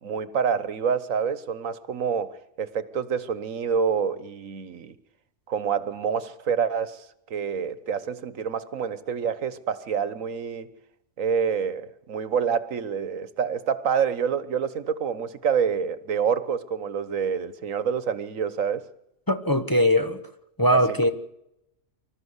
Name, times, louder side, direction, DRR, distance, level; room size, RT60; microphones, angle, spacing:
voice 1, 0.0-5.0 5.5-7.0 7.3-10.7 11.2-18.9 20.7-20.8, right 7 dB, 80° right, 1.5 m, -27 dB
voice 2, 19.3-20.3 20.6-21.1, equal, 15° left, 1.2 m, -21 dB
25.5 x 13.5 x 8.1 m
omnidirectional pair, 1.4 m